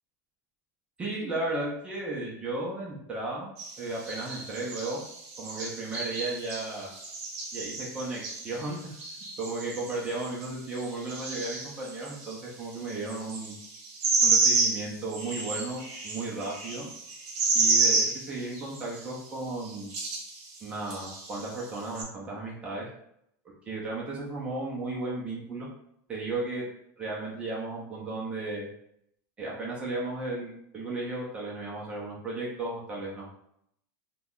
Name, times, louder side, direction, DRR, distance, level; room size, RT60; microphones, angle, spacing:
voice 1, 1.0-3.5 3.8-5.0 5.4-6.9 7.5-9.0 9.4-13.6 14.2-16.9 17.5-19.9 20.6-22.9 23.6-25.7 26.1-26.7 27.0-28.7 29.4-33.3, right 2 dB, 15° right, -5 dB, 0.5 m, -34 dB
sound 1, 3.6-12.3 12.7-19.1 19.6-20.6 20.9-22.0, right 3 dB, 40° right, 1.0 m, -30 dB
2.8 x 2.1 x 3.6 m, 0.74 s
supercardioid pair, 180°, 9 cm